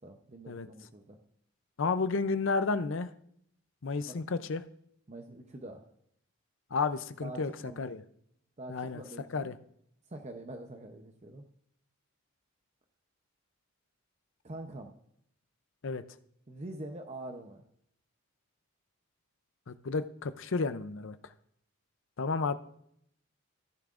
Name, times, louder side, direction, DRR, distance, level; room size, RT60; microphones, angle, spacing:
voice 1, 0.0-1.2 4.0-4.2 5.1-5.8 7.2-7.8 8.6-9.5 10.1-11.4 14.4-14.9 16.5-17.6, right 2 dB, 30° right, 5 dB, 0.7 m, -44 dB
voice 2, 1.8-3.1 3.8-4.6 6.7-7.5 7.8-8.0 8.7-9.0 9.3-9.5 15.8-16.0 19.7-21.2 22.2-22.5, left 4 dB, 60° left, 12 dB, 0.6 m, -31 dB
14.5 x 10.5 x 2.5 m, 0.69 s
head